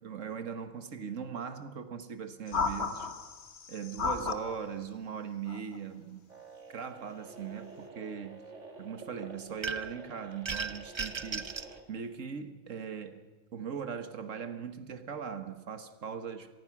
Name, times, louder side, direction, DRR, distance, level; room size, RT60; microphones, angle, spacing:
voice 1, 0.0-3.1 3.7-6.2 6.7-8.4 8.8-11.5 11.9-13.2 13.5-16.5, right 7 dB, 90° right, 10 dB, 1.7 m, -40 dB
sound 1, 2.5-4.6 5.5-5.8, left 4 dB, 60° left, 1.6 m, -33 dB
sound 2, 6.3-11.8, right 3 dB, 75° right, 2.8 m, -49 dB
sound 3, 9.6-10.0 10.4-11.7, right 5 dB, 30° right, 0.6 m, -36 dB
26.5 x 18.5 x 6.1 m, 1.2 s
omnidirectional pair, 1.3 m